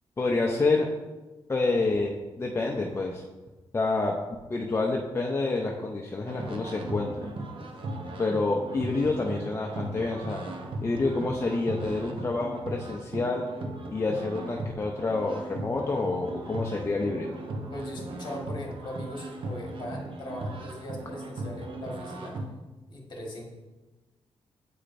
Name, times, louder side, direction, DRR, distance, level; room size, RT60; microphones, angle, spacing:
voice 1, 0.2-0.9 1.5-3.2 3.7-4.2 4.5-7.3 8.2-10.4 10.8-13.5 13.9-17.4, left 3 dB, 25° left, 0 dB, 0.5 m, -28 dB
sound 1, 6.3-22.5, right 2 dB, 55° right, 0.7 m, -38 dB
voice 2, 17.7-22.4 22.9-23.4, left 1 dB, 45° left, 0 dB, 1.4 m, -39 dB
8.5 x 4.9 x 2.5 m, 1.2 s
wide cardioid pair, 125°, 10 cm